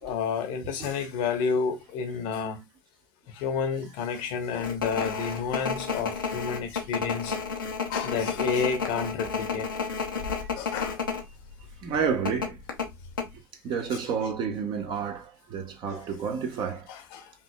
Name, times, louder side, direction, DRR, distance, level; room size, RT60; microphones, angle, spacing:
voice 1, 0.0-2.6 3.3-7.4 7.9-9.7 10.5-11.0 15.9-16.0 16.9-17.3, left 5 dB, 60° left, 1.0 m, -30 dB
sound 1, 4.6-11.2 11.5-11.7 12.3-13.3, left 5 dB, 80° left, 0.9 m, -31 dB
voice 2, 11.8-12.6 13.6-16.9, right 6 dB, 45° right, 1.1 m, -30 dB
5.3 x 3.0 x 2.3 m
figure-of-eight pair, 65°, 11 cm